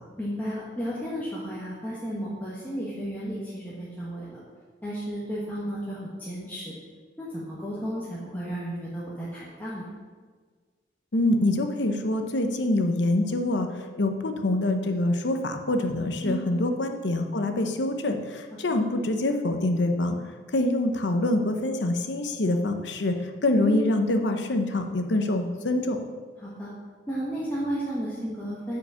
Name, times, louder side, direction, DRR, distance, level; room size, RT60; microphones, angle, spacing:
voice 1, 0.2-4.4 4.8-6.8 7.2-9.9 16.2-16.5 23.6-23.8 26.4-26.7 27.1-28.8, equal, 10° left, -8 dB, 1.5 m, -33 dB
voice 2, 11.1-20.2 20.5-26.0, left 1 dB, 85° left, 6 dB, 0.9 m, -25 dB
8.8 x 5.1 x 6.9 m, 1.5 s
head